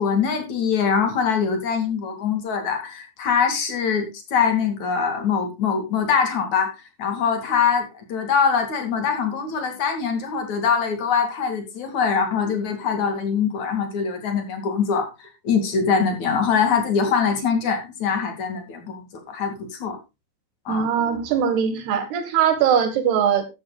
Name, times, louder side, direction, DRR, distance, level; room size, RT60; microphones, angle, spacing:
voice 1, 0.0-20.0 20.6-20.9, left 6 dB, 45° left, 3.2 m, -23 dB
voice 2, 20.7-23.5, right 8 dB, 65° right, 3.5 m, -21 dB
13.5 x 12.5 x 2.4 m
omnidirectional pair, 5.2 m